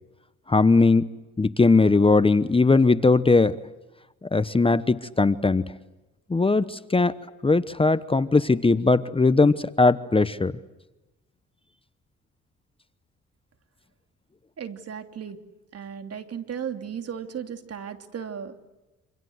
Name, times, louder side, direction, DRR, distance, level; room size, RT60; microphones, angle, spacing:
voice 1, 0.5-1.1 1.4-3.6 4.2-5.7 6.3-10.5, left 3 dB, 20° left, 14 dB, 1.0 m, -20 dB
voice 2, 14.6-15.4 15.7-18.6, right 8 dB, 55° right, 7 dB, 2.9 m, -35 dB
27.5 x 26.5 x 7.9 m, 1.1 s
cardioid pair, 90°, 30 cm